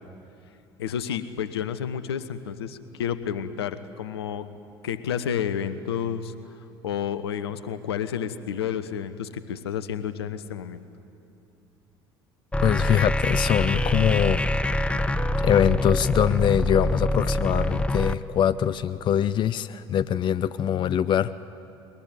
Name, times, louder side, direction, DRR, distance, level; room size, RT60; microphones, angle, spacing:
voice 1, 0.8-4.5 4.8-6.3 6.8-10.8, left 8 dB, 75° left, 13 dB, 0.9 m, -30 dB
sound 1, 12.5-18.1, left 1 dB, 10° left, 0.8 m, -25 dB
voice 2, 12.6-14.4 15.4-21.3, left 10 dB, 35° left, 15 dB, 0.5 m, -23 dB
21.5 x 21.0 x 9.4 m, 2.7 s
figure-of-eight pair, 60°, 13 cm